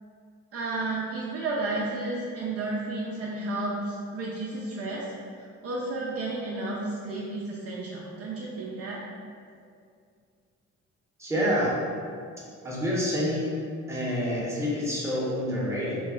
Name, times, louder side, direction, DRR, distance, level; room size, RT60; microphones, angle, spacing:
voice 1, 0.5-5.1 5.6-9.0, right 2 dB, 50° right, -5 dB, 0.5 m, -32 dB
voice 2, 11.2-11.7 12.6-13.5 13.9-16.0, equal, 10° right, -7 dB, 0.7 m, -27 dB
2.2 x 2.1 x 3.6 m, 2.3 s
cardioid pair, 90°, 30 cm